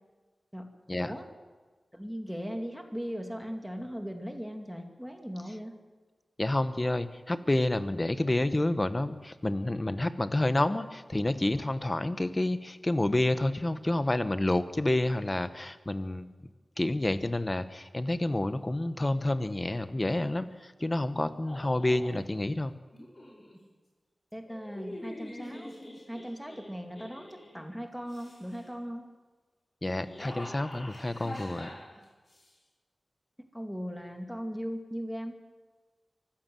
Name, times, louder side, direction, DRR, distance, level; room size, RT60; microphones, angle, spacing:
voice 1, 1.9-5.7 24.3-25.7 26.1-29.1 33.5-35.3, equal, 5° right, 4 dB, 2.4 m, -38 dB
voice 2, 6.4-16.3 16.8-22.7 29.8-31.7, left 1 dB, 25° left, 11 dB, 1.2 m, -29 dB
sound 1, 21.5-22.2 22.9-23.6 24.4-27.6 28.0-28.7 29.8-32.5, left 1 dB, 40° left, 5.8 m, -45 dB
24.0 x 15.0 x 7.7 m, 1.4 s
wide cardioid pair, 85°, 0 cm